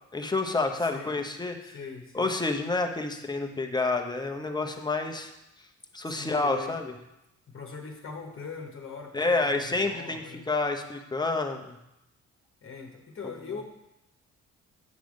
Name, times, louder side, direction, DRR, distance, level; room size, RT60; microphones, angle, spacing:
voice 1, 0.1-1.8 2.1-5.3 5.9-6.9 9.1-11.8, left 3 dB, 15° left, 3 dB, 0.8 m, -29 dB
voice 2, 0.8-1.1 1.6-2.3 6.0-6.8 7.5-10.5 12.6-13.6, left 5 dB, 45° left, 0 dB, 1.2 m, -41 dB
9.2 x 3.4 x 6.4 m, 0.91 s
cardioid pair, 90°, 30 cm